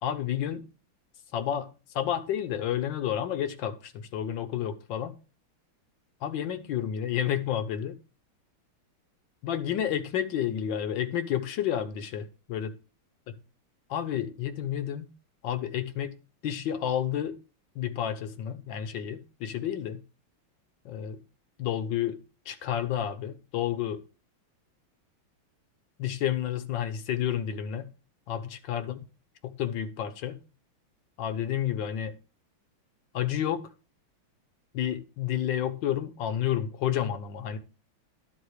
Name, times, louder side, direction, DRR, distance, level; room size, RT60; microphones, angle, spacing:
voice 1, 0.0-0.6 1.3-5.2 6.2-8.0 9.4-12.8 13.9-15.1 15.4-16.1 16.4-17.4 17.7-20.0 20.8-21.2 21.6-22.2 22.4-24.0 26.0-27.9 28.3-29.0 29.4-30.4 31.2-32.1 33.1-33.7 34.7-37.6, left 10 dB, 70° left, 1.5 m, -30 dB
11.0 x 3.9 x 6.5 m
omnidirectional pair, 2.2 m